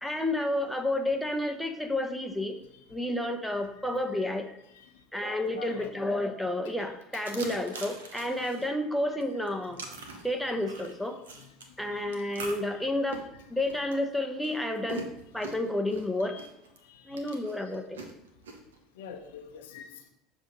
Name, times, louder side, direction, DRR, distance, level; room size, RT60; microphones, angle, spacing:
voice 1, 0.0-2.6 2.9-4.4 5.1-9.8 10.2-11.2 11.8-13.2 13.5-15.0 15.3-16.3 17.1-18.0, left 1 dB, 5° left, 4 dB, 0.8 m, -30 dB
voice 2, 5.6-5.9 7.1-7.2 11.4-11.5 11.9-12.3 12.7-12.9 16.2-16.5 16.8-17.8 19.0-20.1, left 7 dB, 80° left, 4 dB, 0.7 m, -47 dB
sound 1, 7.2-8.7 9.2-11.7 12.1-16.8 17.2-18.8, right 4 dB, 85° right, 0.7 m, -43 dB
6.8 x 2.7 x 5.2 m, 0.83 s
hypercardioid pair, 80°, 0 cm